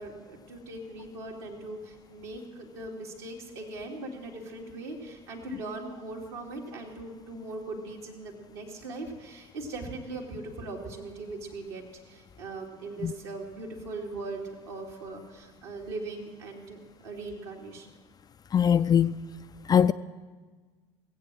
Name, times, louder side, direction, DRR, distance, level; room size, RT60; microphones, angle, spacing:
voice 1, 0.0-18.0, right 2 dB, 65° right, 2.6 m, -40 dB
voice 2, 18.5-19.1 19.7-19.9, left 8 dB, 25° left, 0.4 m, -21 dB
17.5 x 8.5 x 7.6 m
figure-of-eight pair, 65°, 15 cm